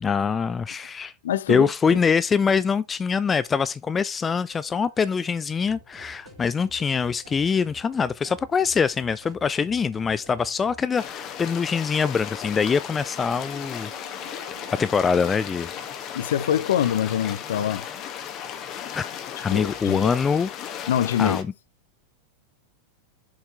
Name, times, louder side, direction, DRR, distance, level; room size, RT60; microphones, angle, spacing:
voice 1, 0.0-1.1 1.5-14.4 14.8-15.7 18.9-19.0 19.4-20.5 21.2-21.5, left 6 dB, 20° left, 0.3 m, -24 dB
voice 2, 1.2-2.0 16.1-17.9 19.5-20.1 20.9-21.4, left 10 dB, 60° left, 0.6 m, -25 dB
sound 1, 4.5-16.0, right 3 dB, 65° right, 2.4 m, -53 dB
sound 2, 5.6-10.9, right 1 dB, ahead, 1.9 m, -50 dB
sound 3, 11.0-21.4, left 9 dB, 35° left, 1.2 m, -36 dB
7.3 x 4.4 x 4.3 m
figure-of-eight pair, 90°, 0 cm